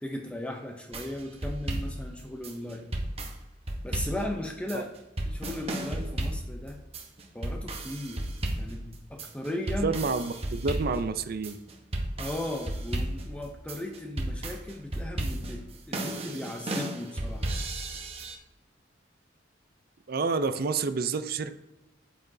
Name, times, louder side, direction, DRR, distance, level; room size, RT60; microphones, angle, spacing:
voice 1, 0.0-2.9 3.8-4.9 5.3-6.8 7.3-8.3 8.6-10.0 12.2-17.6, left 1 dB, 5° left, 3 dB, 0.6 m, -36 dB
sound 1, 0.9-18.4, right 1 dB, 30° right, 0.9 m, -34 dB
voice 2, 9.8-11.6 20.1-21.5, right 4 dB, 50° right, 10 dB, 0.5 m, -29 dB
8.6 x 5.9 x 2.7 m, 0.97 s
head